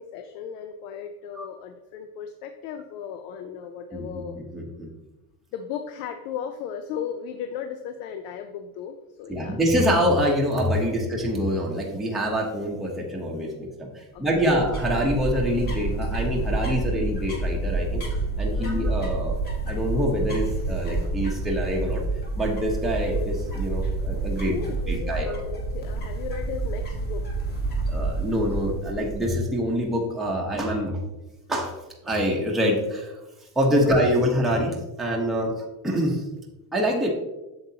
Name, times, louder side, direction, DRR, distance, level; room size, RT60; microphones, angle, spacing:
voice 1, 0.0-4.4 5.5-9.6 14.1-14.5 18.6-18.9 24.4-27.2 33.8-34.0 35.4-35.6, left 7 dB, 65° left, 7 dB, 0.7 m, -36 dB
voice 2, 3.9-4.9 9.3-18.0 18.4-19.4 19.7-22.0 22.3-24.5 24.9-25.3 27.9-31.0 31.5-31.7 32.0-33.2 33.6-35.5 35.8-36.2 36.7-37.1, equal, ahead, -3 dB, 0.9 m, -25 dB
sound 1, 14.2-29.4, right 2 dB, 20° left, 1.4 m, -28 dB
7.8 x 7.0 x 2.8 m, 1.0 s
cardioid pair, 160°, 46 cm